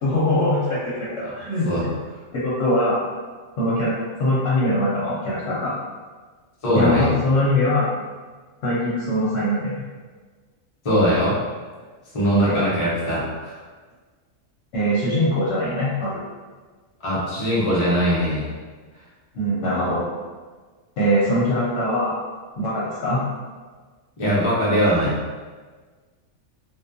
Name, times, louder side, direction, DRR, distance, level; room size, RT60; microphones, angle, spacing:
voice 1, 0.0-1.9 2.3-3.1 3.6-5.7 6.7-7.9 8.6-9.8 12.3-12.6 14.7-16.2 19.3-20.1 21.0-22.2 22.6-23.2, left 1 dB, 65° left, -8 dB, 0.9 m, -22 dB
voice 2, 6.6-7.1 10.8-11.4 12.1-13.6 17.0-18.5 24.2-25.1, equal, 45° left, -8 dB, 0.4 m, -21 dB
2.4 x 2.2 x 2.5 m, 1.4 s
omnidirectional pair, 1.4 m